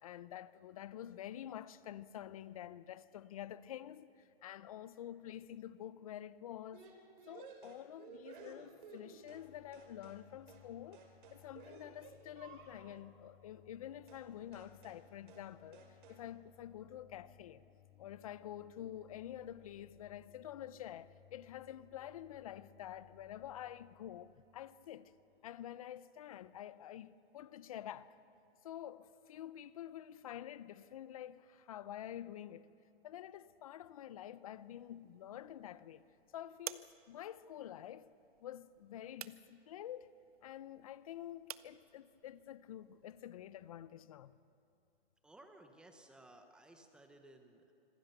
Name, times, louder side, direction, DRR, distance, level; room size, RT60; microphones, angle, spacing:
voice 1, 0.0-6.9 7.3-11.0 11.3-17.6 18.0-25.1 25.4-28.2 28.6-32.7 33.0-36.1 36.3-38.1 38.4-40.1 40.4-44.4, left 11 dB, 35° left, 0.6 m, -48 dB
sound 1, 6.7-9.5 9.7-10.2 10.5-10.7 10.9-13.0 14.1-14.3 14.5-15.0 15.3-15.5 15.7-16.2, right 5 dB, 55° right, 3.6 m, -56 dB
sound 2, 9.2-25.6, left 10 dB, 85° left, 2.5 m, -65 dB
sound 3, 34.5-43.7, right 11 dB, 40° right, 0.5 m, -55 dB
voice 2, 45.2-47.7, right 1 dB, 5° right, 0.8 m, -59 dB
26.0 x 16.0 x 6.7 m
hypercardioid pair, 165°, 30 cm